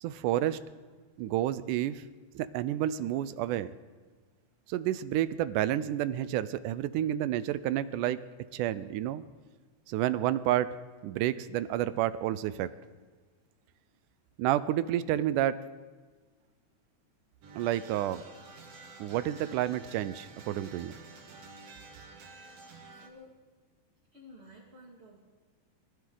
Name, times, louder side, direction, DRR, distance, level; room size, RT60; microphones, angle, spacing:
voice 1, 0.0-0.6 1.2-2.0 2.4-3.7 4.7-8.2 8.5-9.2 9.9-12.7 14.4-15.6 17.6-18.2 19.0-20.9, right 12 dB, 90° right, 15 dB, 2.2 m, -30 dB
sound 1, 17.4-23.1, right 3 dB, 55° right, 2.3 m, -50 dB
voice 2, 22.9-23.3 24.1-25.2, left 1 dB, 20° right, -6 dB, 2.2 m, -52 dB
24.5 x 14.0 x 3.9 m, 1.4 s
omnidirectional pair, 3.5 m